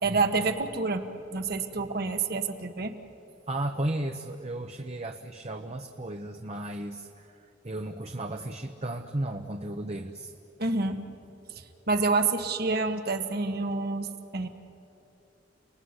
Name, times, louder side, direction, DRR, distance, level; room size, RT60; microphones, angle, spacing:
voice 1, 0.0-1.0 1.3-2.9 10.6-11.0 11.5-14.1 14.3-14.5, right 3 dB, 55° right, 6 dB, 1.7 m, -28 dB
voice 2, 3.5-10.3, right 1 dB, 35° right, 5 dB, 1.0 m, -34 dB
30.0 x 19.5 x 9.8 m, 2.8 s
head